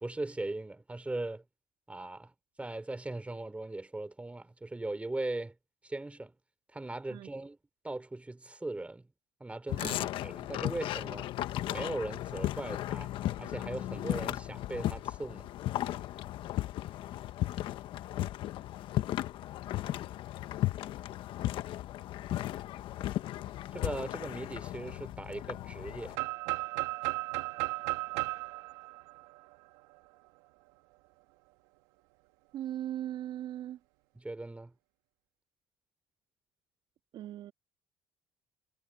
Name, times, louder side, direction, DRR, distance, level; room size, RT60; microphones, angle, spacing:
voice 1, 0.0-1.4 1.9-2.3 2.6-5.5 5.8-6.3 6.7-7.6 7.8-9.0 9.4-10.0 10.2-11.3 11.7-13.1 13.4-15.5 23.7-26.3 34.2-34.7, right 2 dB, 15° right, 3.4 m, -39 dB
sound 1, 9.7-26.2, left 14 dB, 65° left, 1.3 m, -36 dB
voice 2, 9.8-10.1 19.8-20.0 32.5-33.8 37.1-37.5, right 12 dB, 65° right, 3.1 m, -39 dB
sound 2, 26.1-30.0, right 23 dB, 80° right, 2.0 m, -35 dB
supercardioid pair, 70°, 9 cm